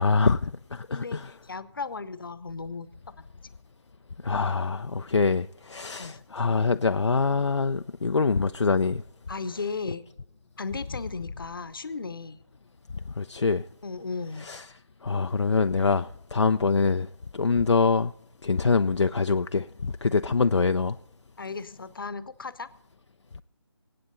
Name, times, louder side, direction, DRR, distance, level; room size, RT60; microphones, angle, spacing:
voice 1, 0.0-1.3 4.2-9.0 13.2-13.6 14.4-14.6 15.0-17.1 17.3-18.1 18.4-21.0, left 4 dB, 70° left, 0.5 m, -24 dB
voice 2, 0.9-3.2 6.0-6.2 9.3-10.0 10.6-12.4 13.8-14.5 21.4-22.7, left 4 dB, 50° left, 0.9 m, -35 dB
25.5 x 8.5 x 4.0 m
figure-of-eight pair, 155°, 15 cm